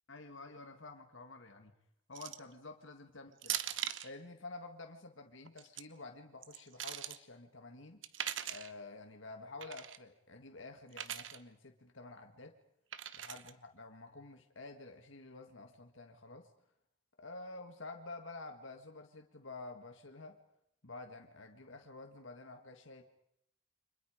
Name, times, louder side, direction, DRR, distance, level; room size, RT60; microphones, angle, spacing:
voice 1, 0.1-1.7 2.1-3.6 4.0-8.0 8.4-12.6 13.2-16.5 17.2-20.4 20.8-23.0, left 3 dB, 70° left, 4 dB, 1.8 m, -50 dB
sound 1, 2.1-2.5 3.4-4.1 5.4-5.8 6.4-7.2 8.0-8.7 9.6-10.0 10.9-11.4 12.9-13.5, right 11 dB, 65° right, 1.0 m, -40 dB
30.0 x 25.5 x 5.1 m, 0.74 s
head